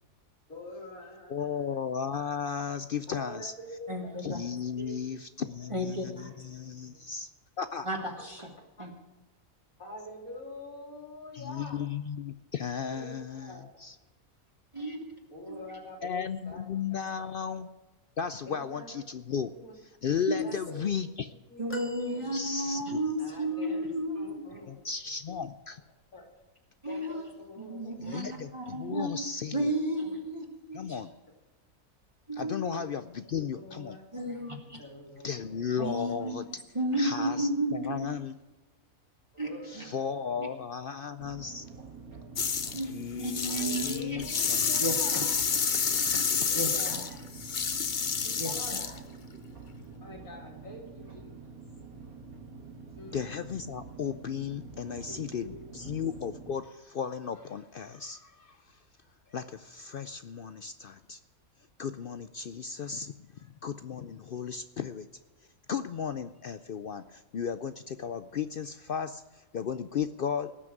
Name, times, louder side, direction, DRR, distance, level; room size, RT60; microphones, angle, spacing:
voice 1, 0.5-1.8 3.1-4.2 4.8-5.0 6.1-7.1 8.8-8.9 9.8-11.9 12.9-13.7 15.3-16.6 17.0-17.1 17.4-17.5 18.5-19.0 19.5-19.8 20.3-20.8 21.5-21.7 22.1-22.7 23.2-23.8 24.1-24.8 26.1-26.3 26.8-28.5 29.7-29.8 32.6-32.8 33.5-34.1 34.8-35.7 36.2-36.3 36.9-37.4 39.3-40.4 43.5-45.3 46.4-47.0 48.2-48.9 50.0-51.6 52.9-53.3 54.8-55.9, left 1 dB, 85° left, -1 dB, 4.0 m, -46 dB
voice 2, 1.3-3.5 4.2-7.3 7.6-7.9 11.3-13.9 16.0-17.7 18.2-19.5 20.0-21.3 22.3-23.0 24.7-25.8 28.0-29.7 30.7-31.1 32.3-34.0 35.2-36.6 37.0-38.4 39.7-41.7 42.8-44.9 53.1-58.8 59.3-61.2 61.8-65.1 65.7-70.5, left 7 dB, 60° left, 12 dB, 0.6 m, -35 dB
voice 3, 3.9-4.4 5.7-6.3 7.9-8.4 8.8-8.9 14.7-15.2 15.5-15.6 20.3-20.4 21.6-24.5 26.8-27.3 27.6-28.3 28.5-29.2 29.5-31.0 32.3-32.5 34.1-34.8 35.8-36.4 36.8-38.1 39.4-39.5 39.8-39.9 42.7-44.2 44.8-45.3 46.5-47.0 48.4-48.8, right 1 dB, 20° right, 1 dB, 2.0 m, -33 dB
sound 1, 21.7-23.1 23.8-23.9, right 1 dB, 10° left, 1.0 m, -42 dB
sound 2, 41.2-56.5, right 4 dB, 80° right, 3.4 m, -47 dB
sound 3, 42.4-42.8 43.2-49.0, left 6 dB, 40° left, 0.9 m, -29 dB
18.0 x 6.2 x 9.0 m, 1.2 s
omnidirectional pair, 1.5 m